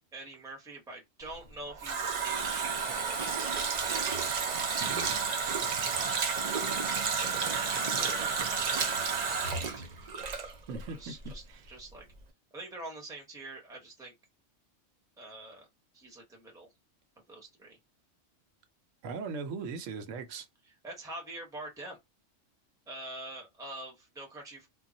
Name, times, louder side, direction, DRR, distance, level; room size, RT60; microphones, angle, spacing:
voice 1, 0.1-3.7 7.8-9.9 10.9-12.1 12.5-14.1 15.2-15.7 15.9-16.7 17.3-17.8 20.7-22.0 22.9-24.7, right 2 dB, 5° right, 0.7 m, -45 dB
Water tap faucet, 1.3-11.0 11.2-11.3, right 5 dB, 60° right, 0.4 m, -31 dB
voice 2, 4.8-5.2 10.7-11.6 19.0-20.5, right 4 dB, 80° right, 1.0 m, -39 dB
2.3 x 2.1 x 3.8 m
omnidirectional pair, 1.3 m